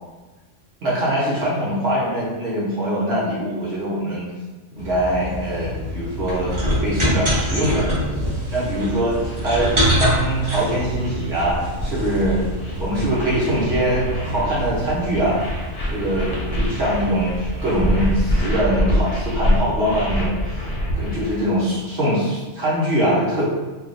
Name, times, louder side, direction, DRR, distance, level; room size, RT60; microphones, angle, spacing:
voice 1, 0.8-4.3 4.8-6.6 6.8-12.4 12.8-15.4 15.9-20.7 20.9-23.5, right 1 dB, 60° right, -7 dB, 0.9 m, -23 dB
sound 1, 4.8-18.2, equal, 25° right, 0.9 m, -26 dB
sound 2, 8.5-21.4, equal, 60° left, 1.0 m, -26 dB
3.4 x 2.3 x 2.4 m, 1.2 s
omnidirectional pair, 1.2 m